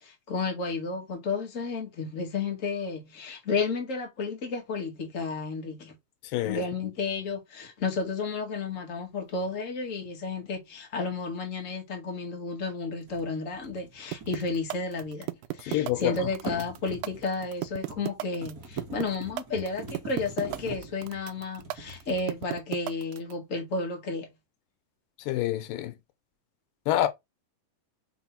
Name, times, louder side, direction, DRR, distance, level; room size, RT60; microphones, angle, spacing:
voice 1, 0.0-5.9 6.4-15.3 15.5-24.3, left 4 dB, 30° left, 1.7 m, -32 dB
sound 1, 13.0-15.2 15.5-22.8, right 3 dB, 35° right, 1.6 m, -44 dB
sound 2, 14.1-23.3, right 16 dB, 85° right, 1.8 m, -34 dB
voice 2, 15.7-16.1 25.3-25.9 26.9-27.1, left 14 dB, 85° left, 2.4 m, -26 dB
5.8 x 4.1 x 4.2 m
omnidirectional pair, 4.0 m